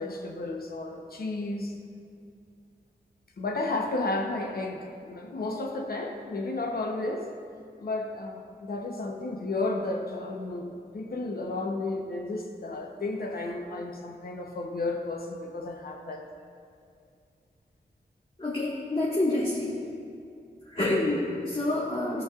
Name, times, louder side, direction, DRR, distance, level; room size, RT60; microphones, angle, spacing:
voice 1, 0.0-1.7 3.4-7.3 7.8-16.2, left 2 dB, 60° left, 2 dB, 1.0 m, -33 dB
voice 2, 18.4-19.8 20.6-22.2, left 2 dB, 30° left, -7 dB, 1.7 m, -27 dB
15.5 x 5.2 x 2.5 m, 2.4 s
cardioid pair, 50°, 18 cm